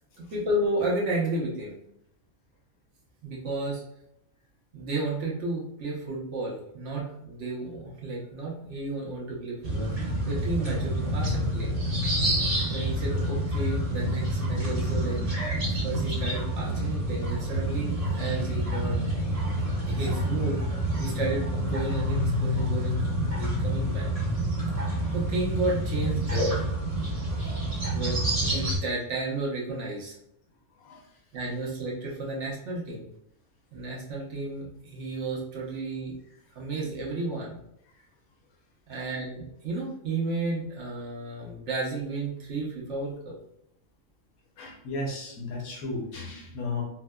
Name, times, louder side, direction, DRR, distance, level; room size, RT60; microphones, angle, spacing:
voice 1, 0.2-1.8 3.2-3.8 4.7-11.7 12.7-15.2 15.7-19.0 19.9-20.6 21.0-24.1 25.1-26.7 27.9-30.1 31.3-33.1 33.7-36.1 36.5-37.6 38.9-43.3, right 2 dB, 60° right, -4 dB, 1.1 m, -32 dB
sound 1, 9.6-28.8, equal, 30° right, 1.0 m, -28 dB
voice 2, 44.6-46.8, left 2 dB, 90° left, 0 dB, 1.2 m, -34 dB
4.5 x 2.1 x 2.2 m, 0.77 s
omnidirectional pair, 1.4 m